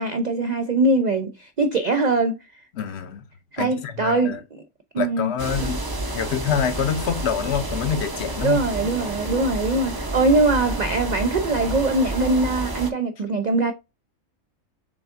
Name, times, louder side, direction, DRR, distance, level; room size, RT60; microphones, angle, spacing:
voice 1, 0.0-2.4 3.5-4.4 4.9-5.3 5.6-5.7 8.4-13.7, right 2 dB, 80° right, 0.4 m, -22 dB
voice 2, 2.7-3.2 3.6-4.4 5.0-5.8 6.1-8.6, left 7 dB, 60° left, 0.8 m, -26 dB
sound 1, 5.4-12.9, right 2 dB, 25° right, 0.5 m, -30 dB
6.2 x 3.5 x 2.5 m
omnidirectional pair, 1.5 m